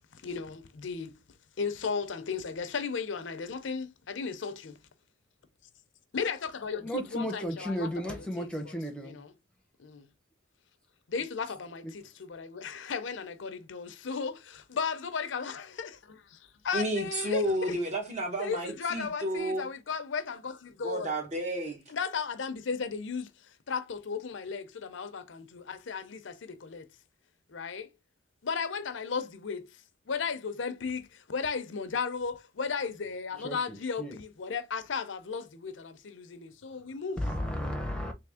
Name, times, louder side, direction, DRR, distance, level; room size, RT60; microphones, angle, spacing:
voice 1, 0.1-1.2 1.6-4.8 6.1-8.8 9.0-9.3 9.8-10.1 11.1-17.8 18.4-21.1 21.9-23.3 23.7-26.9 27.5-27.9 28.4-29.7 30.1-37.2, left 5 dB, 75° left, 0.6 m, -35 dB
voice 2, 6.8-9.1 33.4-34.2 37.2-38.1, equal, 5° left, 0.8 m, -34 dB
voice 3, 16.7-19.7 20.8-21.8, right 1 dB, 35° right, 1.1 m, -31 dB
3.4 x 3.1 x 3.4 m
head